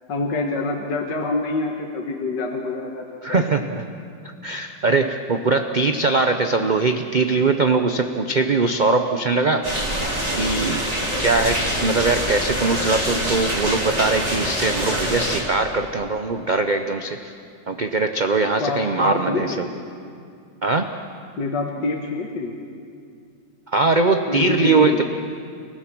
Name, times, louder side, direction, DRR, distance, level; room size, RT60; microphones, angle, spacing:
voice 1, 0.1-3.4 18.6-19.7 21.4-22.6 24.3-25.0, left 3 dB, 75° left, 1 dB, 2.0 m, -26 dB
voice 2, 3.2-3.8 4.4-9.6 10.4-10.8 11.2-17.3 17.7-19.7 20.6-20.9 23.7-25.0, right 3 dB, 55° right, 6 dB, 0.5 m, -21 dB
sound 1, 9.6-15.4, right 1 dB, 20° right, 3.5 m, -25 dB
29.5 x 16.0 x 6.1 m, 2.4 s
omnidirectional pair, 1.9 m